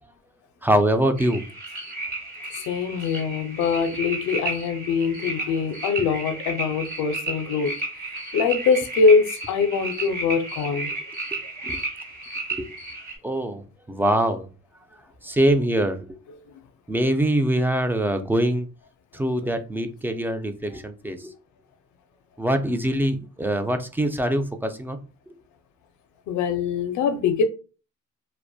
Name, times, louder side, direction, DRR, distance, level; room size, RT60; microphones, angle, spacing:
voice 1, 0.6-1.4 6.0-6.1 11.3-11.4 11.6-11.8 12.5-12.7 13.2-14.5 15.2-16.2 16.9-18.7 19.1-21.3 22.4-25.0, right 1 dB, 5° right, 0.3 m, -23 dB
sound 1, 1.2-13.2, right 2 dB, 30° right, 1.5 m, -33 dB
voice 2, 2.7-7.7 8.3-10.9 26.3-27.4, left 5 dB, 80° left, 0.5 m, -23 dB
2.5 x 2.1 x 2.3 m
cardioid pair, 90°, 30 cm